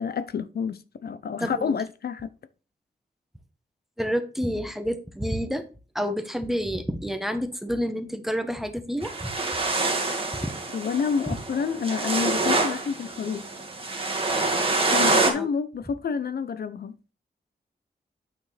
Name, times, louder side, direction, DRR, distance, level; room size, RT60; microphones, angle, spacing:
voice 1, 0.0-2.3 10.7-13.5 14.5-17.0, left 6 dB, 65° left, 0.5 m, -29 dB
voice 2, 1.4-1.7 4.0-5.7 5.9-9.3 10.4-10.6 15.3-15.5, equal, ahead, 0.9 m, -29 dB
sound 1, 9.0-15.3, right 3 dB, 30° right, 1.8 m, -26 dB
9.1 x 5.9 x 3.3 m
wide cardioid pair, 165°, 17 cm